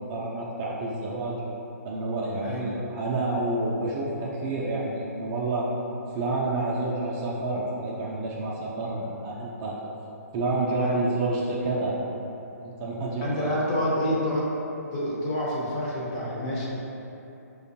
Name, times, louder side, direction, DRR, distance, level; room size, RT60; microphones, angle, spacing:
voice 1, 0.0-1.4 1.8-5.7 6.1-9.8 10.3-12.0 12.6-13.5, right 2 dB, 25° right, -5 dB, 0.4 m, -29 dB
voice 2, 2.4-2.8 10.8-11.2 13.2-14.5 14.9-16.7, equal, 30° left, -6 dB, 0.8 m, -28 dB
4.8 x 2.2 x 2.7 m, 3.0 s
figure-of-eight pair, 135°, 9 cm